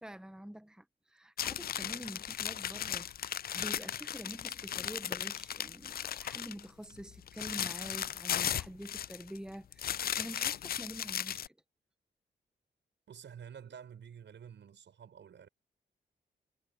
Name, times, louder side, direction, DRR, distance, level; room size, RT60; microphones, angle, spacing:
voice 1, 0.0-11.6, equal, 5° right, 1.6 m, -47 dB
sound 1, 1.4-6.6 7.0-9.4 9.7-11.5, left 10 dB, 50° left, 0.4 m, -36 dB
voice 2, 13.1-15.5, right 8 dB, 70° right, 6.9 m, -50 dB
supercardioid pair, 40°, 19 cm